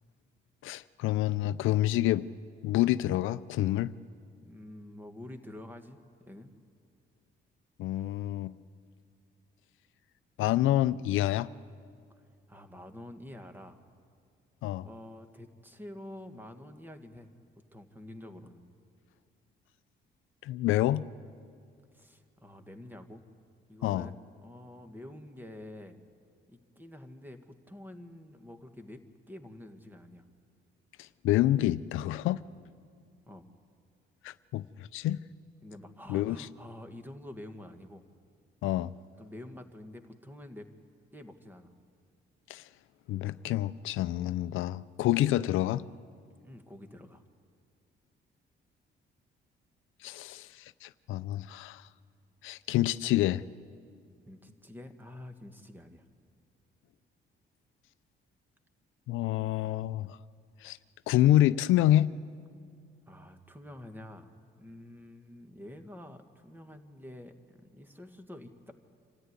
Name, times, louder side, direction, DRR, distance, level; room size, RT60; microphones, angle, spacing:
voice 1, 0.6-2.2 2.6-3.9 7.8-8.5 10.4-11.5 14.6-14.9 20.4-21.0 23.8-24.1 31.0-32.4 34.2-34.6 34.9-35.2 36.1-36.4 38.6-38.9 42.5-42.6 43.1-45.8 50.0-51.8 52.4-53.4 59.1-60.2 60.6-60.8 61.1-62.1, left 14 dB, 85° left, 15 dB, 0.5 m, -27 dB
voice 2, 4.4-6.5 12.1-12.2 12.5-13.8 14.8-17.3 17.7-18.6 21.9-23.2 23.7-26.0 26.5-29.0 29.3-30.3 33.3-33.5 35.6-38.0 39.2-40.7 41.1-41.7 46.4-47.2 54.3-56.0 63.1-68.7, left 1 dB, 10° right, 7 dB, 1.7 m, -48 dB
25.5 x 13.5 x 9.7 m, 2.2 s
cardioid pair, 90°, 20 cm